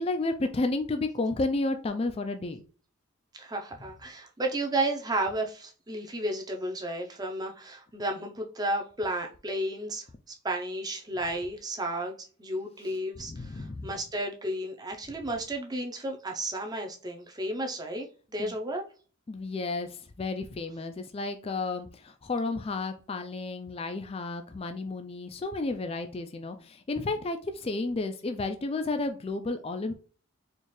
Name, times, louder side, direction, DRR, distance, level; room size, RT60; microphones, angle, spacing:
voice 1, 0.0-2.6 13.2-13.9 18.4-18.5 19.3-29.9, left 3 dB, 25° left, 0.3 m, -32 dB
voice 2, 3.4-10.0 10.4-18.8, right 1 dB, 20° right, 0.6 m, -33 dB
4.3 x 2.4 x 3.2 m
head